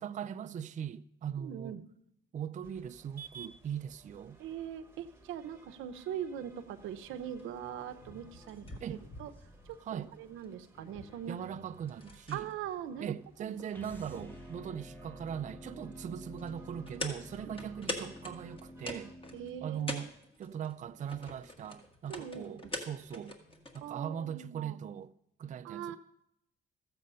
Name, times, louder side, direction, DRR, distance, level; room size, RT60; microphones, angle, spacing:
voice 1, 0.0-1.8 2.3-4.4 8.8-9.0 9.8-10.1 11.3-12.5 13.0-19.1 19.6-20.1 20.4-23.4 23.7-25.1 25.4-26.0, right 8 dB, 40° right, 0.4 m, -40 dB
voice 2, 1.4-1.8 4.4-9.3 9.7-11.4 12.3-13.1 13.4-13.5 17.5-17.6 19.3-20.1 22.1-22.8 23.8-24.8 25.6-26.0, right 9 dB, 90° right, 0.7 m, -41 dB
sound 1, 2.6-19.1, right 5 dB, 10° right, 1.3 m, -59 dB
sound 2, 6.6-23.9, left 1 dB, 25° left, 1.6 m, -47 dB
sound 3, 13.7-19.9, equal, 10° left, 0.8 m, -49 dB
13.5 x 7.5 x 5.5 m
cardioid pair, 90°, 20 cm